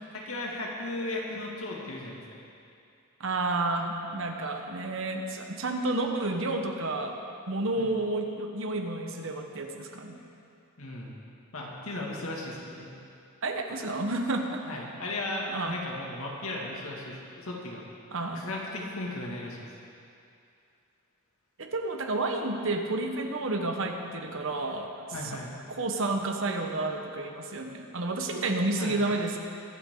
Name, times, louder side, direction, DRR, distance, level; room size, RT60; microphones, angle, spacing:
voice 1, 0.1-2.2 7.8-7.9 10.8-11.2 11.5-12.9 14.7-17.8 18.3-19.6 25.1-25.5 28.4-29.0, left 2 dB, 75° left, -3 dB, 2.3 m, -36 dB
voice 2, 3.2-7.1 7.5-10.2 13.4-14.6 15.5-15.8 18.1-18.5 21.6-24.9 25.7-29.4, right 2 dB, 60° right, 3 dB, 1.2 m, -30 dB
23.0 x 8.5 x 3.9 m, 2.5 s
head